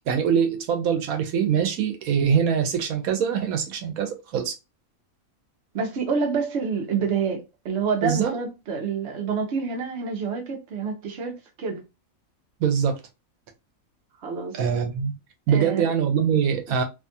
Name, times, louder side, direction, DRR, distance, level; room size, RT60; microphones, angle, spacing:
voice 1, 0.1-4.6 8.0-8.3 12.6-13.0 14.5-15.1 15.5-16.8, right 7 dB, 85° right, 1.1 m, -23 dB
voice 2, 5.7-11.8 14.2-14.5 15.5-15.9, right 5 dB, 55° right, 1.0 m, -27 dB
2.7 x 2.3 x 2.6 m
omnidirectional pair, 1.5 m